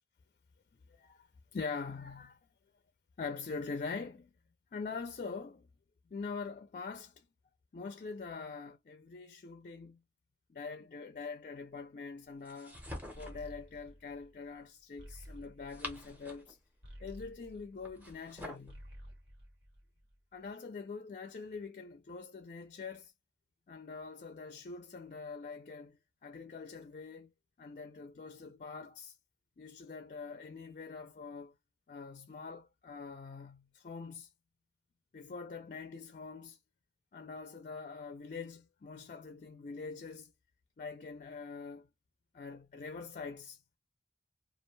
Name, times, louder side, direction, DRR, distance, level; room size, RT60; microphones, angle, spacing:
voice 1, 0.9-2.4 3.2-4.3 4.7-5.7 6.1-7.3 7.7-10.0 10.5-12.8 13.1-16.6 17.0-18.9 20.3-23.1 23.7-27.3 27.6-29.2 29.6-31.5 31.9-34.3 35.1-36.6 37.1-40.3 40.8-41.9 42.3-43.8, left 4 dB, 45° left, 0.4 m, -44 dB
sound 1, 12.4-13.5 15.4-16.6 17.8-18.7, equal, 10° right, 0.6 m, -46 dB
sound 2, 13.1-18.3 18.6-20.3, equal, 90° right, 1.4 m, -53 dB
2.4 x 2.1 x 3.1 m
head